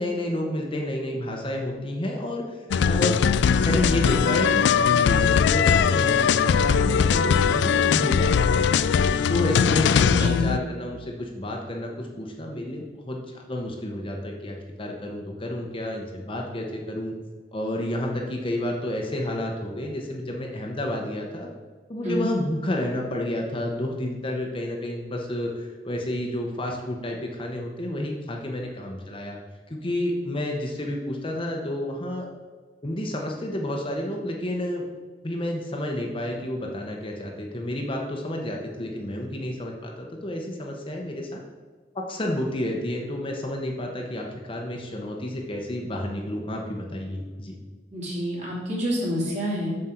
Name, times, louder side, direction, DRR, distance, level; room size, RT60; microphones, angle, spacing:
voice 1, 0.0-2.4 2.8-3.2 3.5-9.0 9.3-13.2 13.5-17.1 17.5-21.5 21.9-29.4 29.7-32.3 32.8-34.8 35.2-41.4 41.9-47.6, left 1 dB, 30° left, 0 dB, 0.9 m, -30 dB
sound 1, 2.7-10.6, left 6 dB, 80° left, 0.3 m, -20 dB
voice 2, 10.1-10.5 22.0-22.3 47.9-49.7, left 1 dB, 45° right, -5 dB, 2.7 m, -27 dB
7.5 x 6.6 x 4.4 m, 1.4 s
head